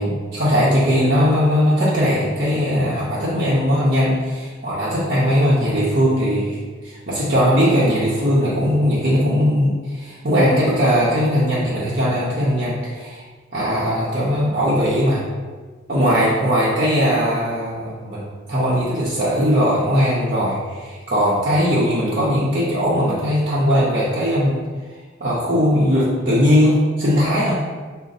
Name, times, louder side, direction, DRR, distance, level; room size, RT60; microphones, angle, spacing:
voice 1, 0.0-13.2 13.5-15.2 15.9-24.6 25.2-27.6, equal, 40° right, -9 dB, 0.7 m, -19 dB
6.1 x 2.1 x 4.0 m, 1.5 s
head